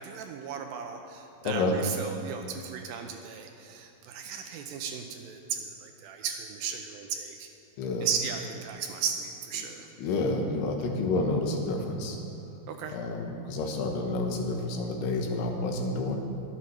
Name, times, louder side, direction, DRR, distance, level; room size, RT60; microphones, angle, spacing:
voice 1, 0.0-7.5 8.0-9.9 12.7-13.0, right 7 dB, 80° right, 4 dB, 2.2 m, -35 dB
voice 2, 1.4-1.8 7.8-8.1 10.0-12.2 12.9-16.2, left 2 dB, 85° left, 2 dB, 3.2 m, -29 dB
23.0 x 8.8 x 3.2 m, 2.7 s
omnidirectional pair, 4.6 m